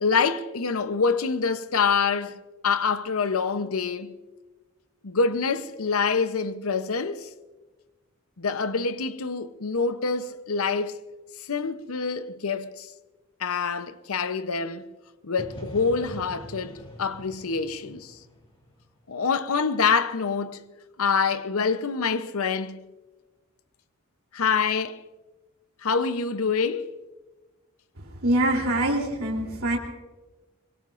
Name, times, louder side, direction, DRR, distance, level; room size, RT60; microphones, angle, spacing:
voice 1, 0.0-2.4 2.6-4.1 5.0-7.3 8.4-11.0 11.5-12.9 13.4-14.9 15.2-18.2 19.1-20.6 21.0-22.8 24.3-25.0 25.8-26.9, left 5 dB, 75° left, 0.8 m, -26 dB
sound 1, 15.4-19.2, left 1 dB, 25° left, 2.6 m, -44 dB
voice 2, 28.2-29.8, right 1 dB, 70° right, 3.3 m, -24 dB
24.5 x 22.5 x 2.5 m
head